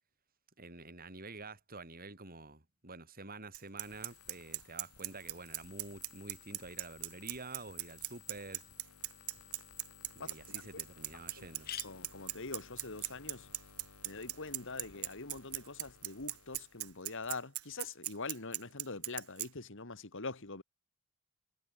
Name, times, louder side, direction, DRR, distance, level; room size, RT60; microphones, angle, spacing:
voice 1, 0.6-8.6 10.2-11.7, right 3 dB, 40° right, 4.0 m, -48 dB
Bicycle, 3.5-19.5, right 18 dB, 75° right, 1.1 m, -38 dB
sound 1, 3.8-17.6, left 6 dB, 80° left, 4.2 m, -58 dB
sound 2, 10.1-10.2 10.6-10.7 10.9-11.0 11.4-15.1, left 10 dB, 45° left, 1.0 m, -52 dB
voice 2, 11.8-13.5 14.0-20.6, left 3 dB, 60° left, 2.2 m, -44 dB
head